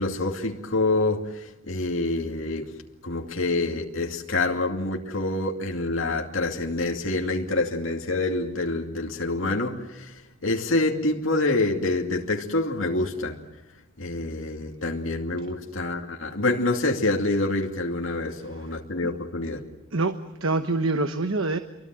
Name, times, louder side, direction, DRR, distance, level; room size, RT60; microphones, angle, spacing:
voice 1, 0.0-2.7 3.0-13.4 14.0-19.6, left 2 dB, 65° left, 2.5 m, -27 dB
voice 2, 19.9-21.6, right 3 dB, 75° right, 1.2 m, -25 dB
28.0 x 24.0 x 7.8 m
head